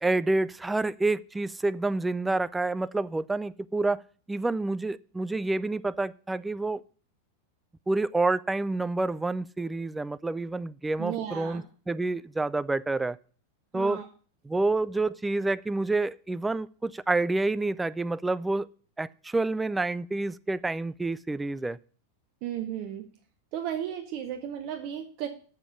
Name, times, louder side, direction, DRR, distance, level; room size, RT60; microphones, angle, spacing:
voice 1, 0.0-4.0 4.3-6.8 7.9-13.2 13.7-14.0 14.5-18.7 19.0-21.8, right 2 dB, 10° right, 17 dB, 0.3 m, -28 dB
voice 2, 11.0-11.6 13.7-14.1 22.4-23.1 23.5-25.3, right 10 dB, 45° right, 7 dB, 0.9 m, -34 dB
7.0 x 6.6 x 6.9 m, 0.42 s
figure-of-eight pair, 90°, 0 cm